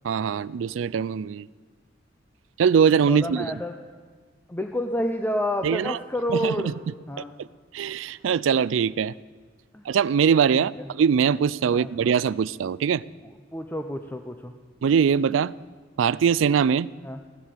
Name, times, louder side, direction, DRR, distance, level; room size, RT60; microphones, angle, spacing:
voice 1, 0.0-1.5 2.6-3.5 5.6-6.0 6.3-6.7 7.4-7.5 7.7-9.1 9.9-13.0 14.8-15.5 16.0-16.9, right 7 dB, 75° right, 20 dB, 0.4 m, -22 dB
voice 2, 3.1-3.8 4.5-6.7 7.1-7.3 9.7-9.8 10.5-10.8 11.7-12.1 13.2-14.5 17.0-17.2, left 1 dB, 10° left, 5 dB, 0.7 m, -29 dB
16.0 x 11.0 x 6.8 m, 1.5 s
head